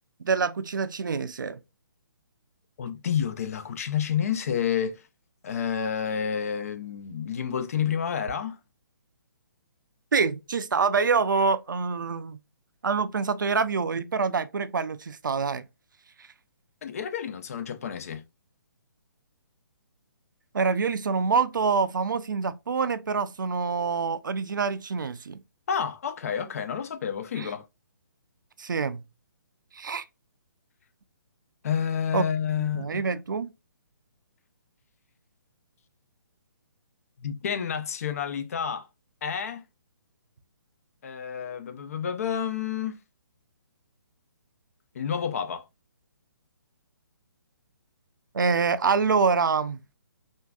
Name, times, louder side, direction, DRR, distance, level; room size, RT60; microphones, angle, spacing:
voice 1, 0.2-1.6 10.1-12.4 12.8-15.7 20.5-25.4 27.4-27.5 28.6-29.0 29.7-30.0 32.1-32.2 32.7-33.5 48.3-49.8, right 5 dB, 65° right, 0.4 m, -26 dB
voice 2, 2.8-5.0 5.4-8.6 16.8-18.2 25.7-27.7 31.6-33.0 37.2-38.9 39.2-39.6 41.0-43.0 44.9-45.6, left 8 dB, 45° left, 0.4 m, -29 dB
3.6 x 2.5 x 2.2 m
figure-of-eight pair, 135°, 12 cm